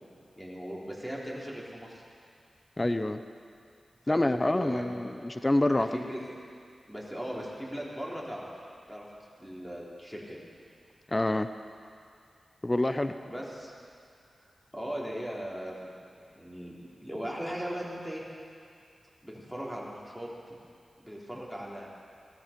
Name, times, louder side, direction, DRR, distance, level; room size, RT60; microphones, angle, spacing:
voice 1, 0.4-2.0 4.0-5.0 5.7-6.4 6.9-8.5 8.9-9.1 9.4-10.4 13.3-13.7 14.7-15.9 16.4-18.2 19.2-20.3 21.0-21.9, equal, 5° left, -4 dB, 3.8 m, -38 dB
voice 2, 2.8-3.2 4.1-5.9 11.1-11.5 12.6-13.1, left 1 dB, 25° left, 9 dB, 0.7 m, -26 dB
17.5 x 13.5 x 5.3 m, 2.3 s
cardioid pair, 60°, 0 cm